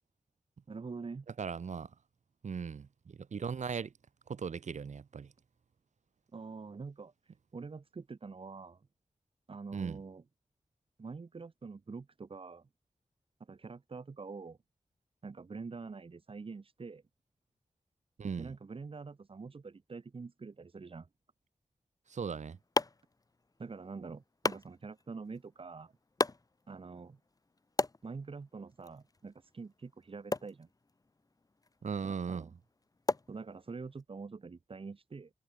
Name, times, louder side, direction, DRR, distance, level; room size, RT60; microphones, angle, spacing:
voice 1, 0.7-1.3 6.3-7.1 7.5-8.9 9.5-10.2 11.0-12.7 13.5-14.6 15.2-17.0 18.4-21.1 23.6-25.9 26.7-27.2 28.0-30.7 32.0-32.5 33.3-35.3, right 4 dB, 50° right, 3.5 m, -45 dB
voice 2, 1.4-1.9 2.4-3.9 4.3-5.3 9.7-10.0 18.2-18.5 22.1-22.6 31.8-32.5, right 6 dB, 85° right, 6.7 m, -38 dB
sound 1, 22.1-34.0, left 3 dB, 30° left, 2.1 m, -40 dB
wide cardioid pair, 120°, 12 cm